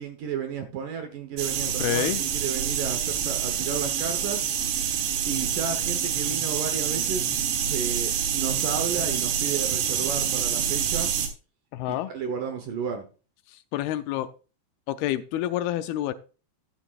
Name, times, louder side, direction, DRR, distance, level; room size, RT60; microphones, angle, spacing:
voice 1, 0.0-4.5 5.3-11.1 12.1-13.1, right 7 dB, 70° right, 6 dB, 2.3 m, -33 dB
sound 1, 1.4-11.3, right 8 dB, 85° right, 3.5 m, -27 dB
voice 2, 1.8-2.2 11.7-12.1 13.5-14.3 14.9-16.1, left 13 dB, 80° left, 10 dB, 2.4 m, -28 dB
12.0 x 11.0 x 2.4 m, 0.34 s
omnidirectional pair, 4.7 m